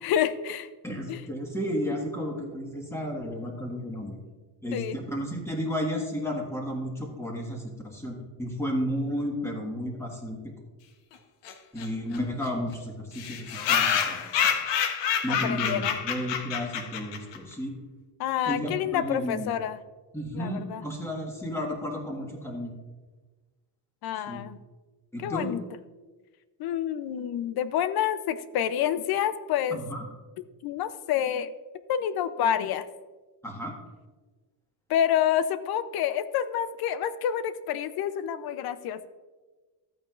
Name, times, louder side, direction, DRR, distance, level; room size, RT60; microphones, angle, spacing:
voice 1, 0.0-0.7 1.1-1.2 4.7-5.0 15.4-16.0 18.2-19.8 20.3-20.8 24.0-24.6 25.2-25.6 26.6-29.8 30.6-31.5 31.9-32.9 34.9-39.1, left 10 dB, 60° left, 13 dB, 0.6 m, -28 dB
voice 2, 0.8-4.2 4.6-10.4 11.7-14.5 15.2-17.7 18.5-19.5 20.1-22.7 24.3-24.4 25.1-25.5 29.7-30.0 33.4-33.7, equal, 5° left, -1 dB, 1.6 m, -33 dB
sound 1, 11.4-11.5 11.8-11.9 12.1-12.2 12.4-12.5 13.1-17.4, left 8 dB, 85° left, 1.1 m, -27 dB
13.5 x 8.7 x 2.5 m, 1.3 s
cardioid pair, 150°, 42 cm